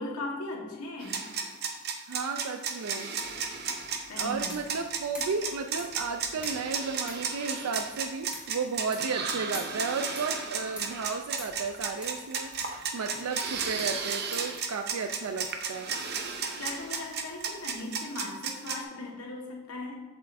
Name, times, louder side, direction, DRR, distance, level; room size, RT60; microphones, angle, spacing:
voice 1, 0.0-1.4 4.1-4.5 16.6-20.0, left 2 dB, 80° left, -1 dB, 1.5 m, -38 dB
sound 1, 1.0-18.8, right 5 dB, 45° right, 0.7 m, -33 dB
voice 2, 2.1-3.1 4.2-15.9, right 4 dB, 80° right, 6 dB, 0.4 m, -34 dB
sound 2, 3.2-17.8, equal, 5° right, 1.1 m, -50 dB
7.9 x 6.9 x 2.6 m, 1.3 s
head